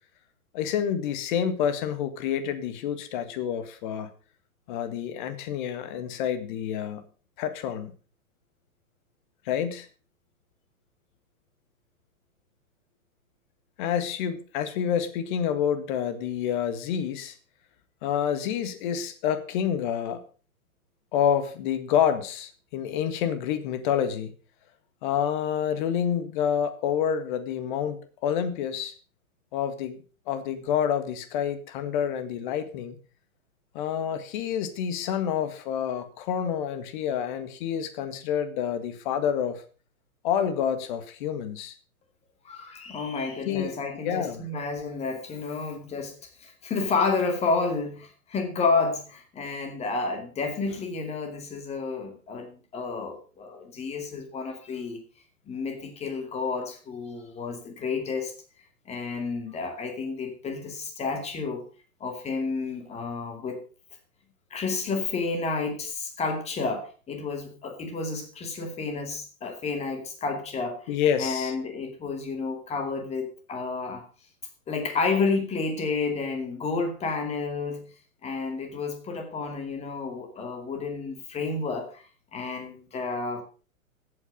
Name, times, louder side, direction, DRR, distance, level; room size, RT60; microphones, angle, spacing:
voice 1, 0.5-4.1 4.7-7.0 7.4-7.9 9.5-9.9 13.8-17.4 18.0-20.2 21.1-24.3 25.0-28.9 29.5-33.0 33.7-39.6 40.2-41.8 43.5-43.8 44.0-44.4 70.9-71.5, left 8 dB, 35° left, 10 dB, 1.8 m, -28 dB
voice 2, 42.4-46.1 46.4-55.0 55.5-58.3 58.9-61.6 62.0-63.6 64.5-70.9 71.2-74.0 74.7-77.8 78.2-82.0 82.3-83.4, left 4 dB, 15° left, 5 dB, 2.5 m, -30 dB
14.5 x 8.7 x 5.2 m, 0.37 s
figure-of-eight pair, 115°, 42 cm